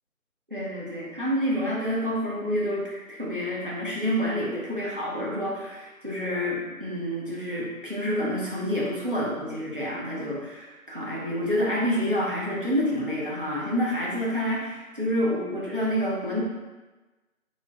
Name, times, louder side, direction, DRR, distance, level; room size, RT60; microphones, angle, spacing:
voice 1, 0.5-16.4, equal, 40° right, -6 dB, 0.7 m, -28 dB
2.9 x 2.8 x 3.3 m, 1.2 s
figure-of-eight pair, 180°, 42 cm